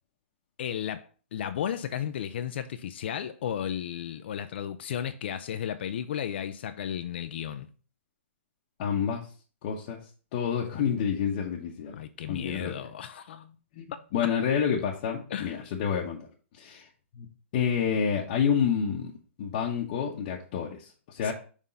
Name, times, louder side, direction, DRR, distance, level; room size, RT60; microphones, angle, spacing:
voice 1, 0.6-7.7 11.9-13.6 15.3-15.6 21.2-21.3, left 9 dB, 55° left, 0.5 m, -34 dB
voice 2, 8.8-9.3 9.6-10.0 10.3-12.0 12.3-12.7 13.7-16.2 16.6-16.9 17.1-17.3 17.5-19.1 19.4-21.3, left 7 dB, 40° left, 0.9 m, -28 dB
5.7 x 3.6 x 5.2 m
hypercardioid pair, 160°, 7 cm